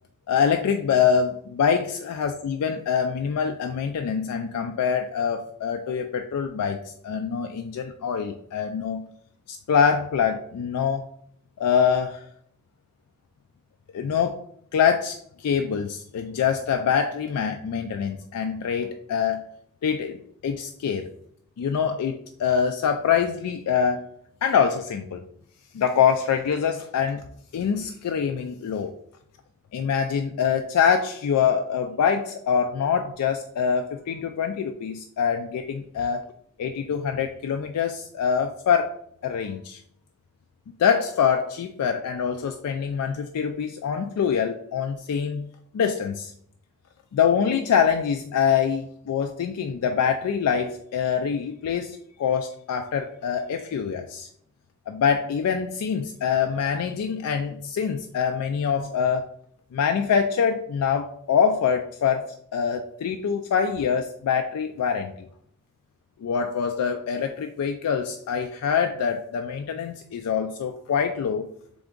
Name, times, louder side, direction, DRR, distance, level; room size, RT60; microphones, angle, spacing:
voice 1, 0.3-9.0 9.5-11.0 11.6-12.3 13.9-14.4 14.7-19.4 19.8-20.2 20.4-21.1 21.6-24.1 24.4-25.2 25.7-27.2 27.5-28.9 29.7-36.2 36.6-38.9 39.2-39.8 40.8-45.5 45.7-46.3 47.1-54.3 54.9-59.3 59.7-65.3 66.2-71.5, left 7 dB, 85° left, 6 dB, 0.3 m, -24 dB
3.7 x 3.4 x 3.7 m, 0.67 s
head